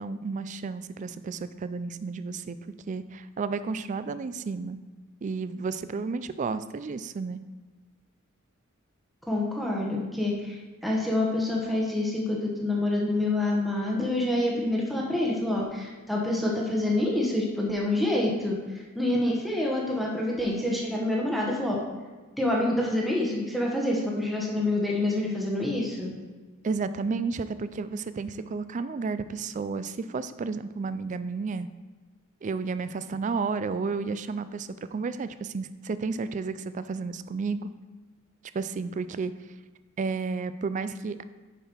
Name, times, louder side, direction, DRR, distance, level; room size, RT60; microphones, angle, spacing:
voice 1, 0.0-2.6 2.9-4.8 5.2-7.4 26.6-31.7 32.4-37.7 38.5-39.3 40.0-41.2, right 4 dB, 35° right, 13 dB, 0.3 m, -32 dB
voice 2, 9.3-21.8 22.4-26.1, left 1 dB, ahead, -3 dB, 1.0 m, -27 dB
7.0 x 5.6 x 4.4 m, 1.3 s
head